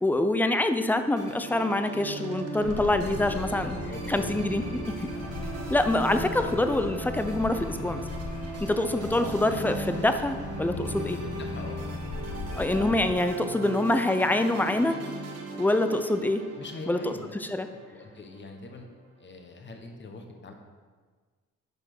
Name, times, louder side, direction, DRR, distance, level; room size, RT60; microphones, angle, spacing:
voice 1, 0.0-3.8 4.1-5.1 5.7-8.0 8.6-11.2 12.6-15.0 15.6-16.4 16.9-17.1 17.4-17.7, left 1 dB, 5° left, 8 dB, 0.6 m, -25 dB
sound 1, 1.2-18.5, right 2 dB, 55° right, 1.5 m, -38 dB
sound 2, 2.6-13.1, left 3 dB, 70° left, 1.5 m, -38 dB
voice 2, 3.1-4.3 11.2-11.8 16.5-17.3 17.7-18.9 19.2-20.5, left 3 dB, 40° left, 3 dB, 1.4 m, -43 dB
11.0 x 4.5 x 6.1 m, 1.5 s
cardioid pair, 90°, 30 cm